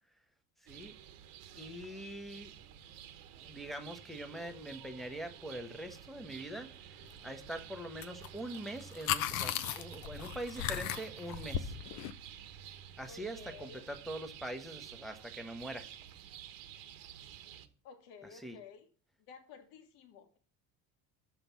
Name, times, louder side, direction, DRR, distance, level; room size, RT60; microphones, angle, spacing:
voice 1, 0.6-0.9 1.6-2.5 3.4-6.7 7.2-11.7 13.0-15.9 18.4-18.6, right 1 dB, ahead, 4 dB, 0.9 m, -43 dB
sound 1, 0.7-17.7, right 9 dB, 80° right, 1.2 m, -51 dB
sound 2, 8.0-8.3 8.5-12.1, left 11 dB, 65° left, 0.7 m, -36 dB
voice 2, 13.1-13.9 17.8-18.9 19.3-20.4, left 6 dB, 85° left, 5 dB, 1.6 m, -53 dB
8.0 x 5.9 x 6.9 m, 0.40 s
cardioid pair, 150°, 34 cm